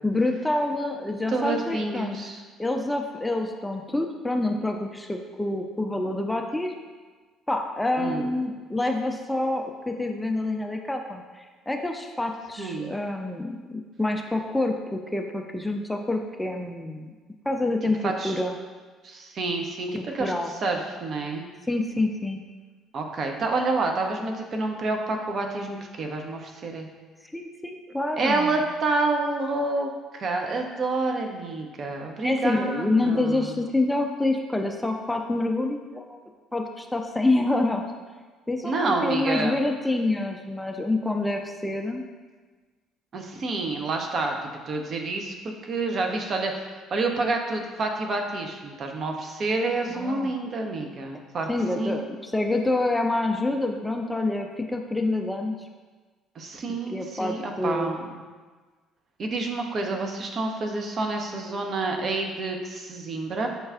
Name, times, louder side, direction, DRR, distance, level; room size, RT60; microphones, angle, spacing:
voice 1, 0.0-2.2 2.6-6.7 7.5-17.1 17.5-18.6 19.9-20.5 21.7-22.4 27.3-28.6 32.2-36.2 36.5-37.9 38.5-42.1 49.9-50.3 51.5-55.6 56.9-58.0, left 2 dB, 10° left, 3 dB, 0.4 m, -27 dB
voice 2, 1.3-2.4 8.0-8.3 12.6-12.9 18.0-18.4 19.0-21.4 22.9-26.9 28.2-33.6 38.6-39.6 43.1-44.4 44.7-45.3 45.6-51.5 51.8-52.1 56.3-58.0 59.2-63.5, right 3 dB, 45° right, 2 dB, 0.5 m, -28 dB
6.5 x 2.3 x 2.4 m, 1.4 s
figure-of-eight pair, 50°, 0 cm